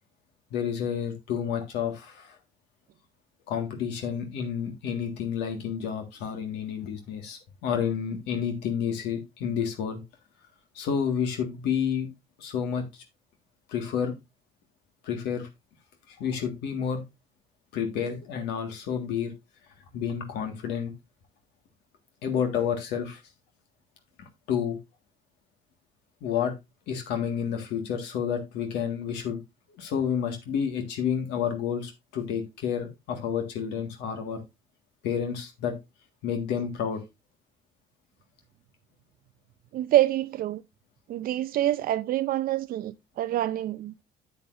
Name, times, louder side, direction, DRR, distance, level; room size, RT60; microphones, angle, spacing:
voice 1, 0.5-2.4 3.5-10.0 10.7-12.1 12.4-13.0 13.7-14.1 15.0-15.5 16.1-17.0 17.7-19.3 19.9-20.9 22.2-23.2 24.5-24.8 26.2-26.5 26.9-29.4 29.8-34.4 35.0-35.7 36.2-37.0, left 7 dB, 85° left, 1.7 m, -30 dB
voice 2, 39.7-40.6 41.1-44.0, right 14 dB, 60° right, 0.4 m, -26 dB
8.7 x 8.3 x 2.6 m
cardioid pair, 110°, 17 cm